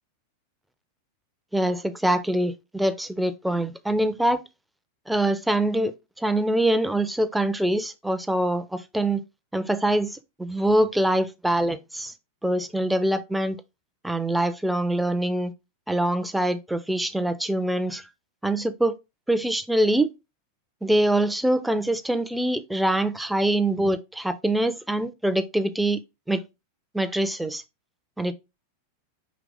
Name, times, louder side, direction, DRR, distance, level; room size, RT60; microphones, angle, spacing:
voice 1, 1.5-4.4 5.1-9.2 9.5-12.1 12.4-13.6 14.0-15.5 15.9-18.1 18.4-19.0 19.3-20.1 20.8-26.0 26.3-26.4 26.9-27.6 28.2-28.3, right 1 dB, 5° right, 0.4 m, -24 dB
4.9 x 3.1 x 3.4 m
figure-of-eight pair, 90°, 0 cm